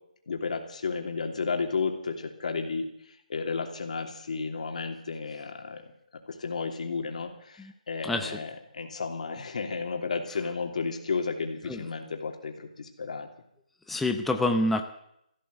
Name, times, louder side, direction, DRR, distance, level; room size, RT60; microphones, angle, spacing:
voice 1, 0.3-2.9 3.3-5.8 6.3-13.3, left 4 dB, 55° left, 4 dB, 2.9 m, -32 dB
voice 2, 8.0-8.4 11.7-11.9 13.9-14.8, left 2 dB, 5° left, 4 dB, 0.7 m, -27 dB
15.0 x 12.5 x 7.8 m, 0.76 s
hypercardioid pair, 160°, 4 cm